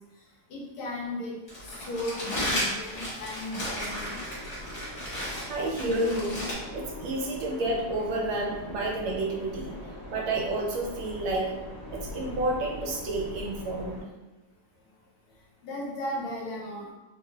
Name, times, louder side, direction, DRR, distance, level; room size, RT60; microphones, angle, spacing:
voice 1, 0.5-4.2 15.6-16.9, left 1 dB, 80° left, -3 dB, 1.7 m, -36 dB
Crumpling crinkling, 1.5-6.5, equal, 60° left, 0.5 m, -34 dB
sound 1, 3.6-14.0, left 1 dB, 40° left, 1.1 m, -42 dB
voice 2, 5.5-6.4 6.7-9.8 10.1-11.5 11.9-14.0, right 2 dB, 75° right, -1 dB, 1.3 m, -30 dB
3.5 x 2.4 x 2.2 m, 1.1 s
omnidirectional pair, 2.3 m